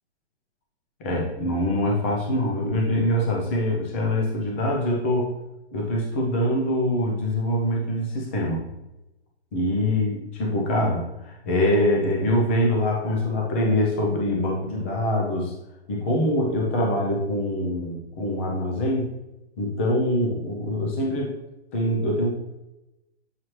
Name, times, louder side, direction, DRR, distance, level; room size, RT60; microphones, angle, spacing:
voice 1, 1.0-5.3 5.7-8.6 9.5-15.5 15.9-19.1 19.6-21.4 21.7-22.3, left 1 dB, 10° left, -1 dB, 0.5 m, -24 dB
7.3 x 4.7 x 3.1 m, 0.95 s
hypercardioid pair, 165°, 33 cm